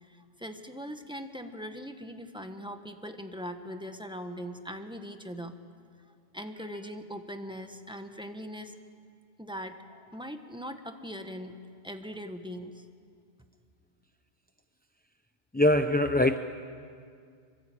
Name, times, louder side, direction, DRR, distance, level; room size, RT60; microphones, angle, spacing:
voice 1, 0.0-5.5 6.3-8.7 9.4-11.5 11.8-12.9, equal, 5° right, 6 dB, 1.4 m, -40 dB
voice 2, 15.5-16.4, left 1 dB, 10° left, 7 dB, 0.4 m, -22 dB
26.0 x 24.0 x 8.7 m, 2.2 s
omnidirectional pair, 1.2 m